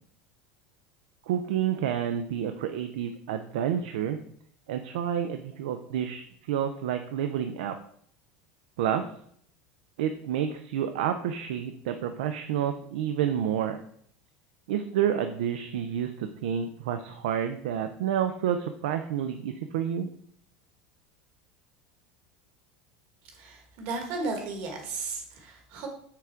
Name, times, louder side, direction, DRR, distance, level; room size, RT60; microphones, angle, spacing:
voice 1, 1.3-4.2 4.7-7.8 8.8-9.0 10.0-13.8 14.7-20.1, right 9 dB, 85° right, 8 dB, 0.5 m, -29 dB
voice 2, 23.4-25.9, right 3 dB, 55° right, 3 dB, 1.5 m, -34 dB
5.9 x 3.7 x 4.5 m, 0.63 s
supercardioid pair, 155°, 4 cm